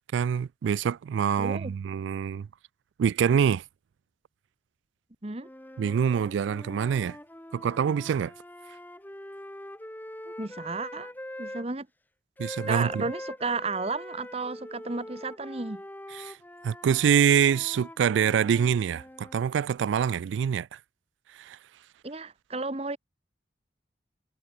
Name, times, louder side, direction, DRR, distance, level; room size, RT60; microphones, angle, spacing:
voice 1, 0.1-2.5 3.0-3.6 5.8-7.2 7.5-8.3 12.4-13.0 16.1-16.4 16.6-20.8 21.4-21.6, right 8 dB, 80° right, 0.3 m, -25 dB
voice 2, 1.4-1.7 5.2-5.5 10.3-11.1 11.4-11.9 12.7-15.8 22.0-23.0, right 3 dB, 30° right, 1.1 m, -33 dB
sound 1, 5.4-11.7 12.4-19.5, left 1 dB, 10° left, 1.5 m, -43 dB
head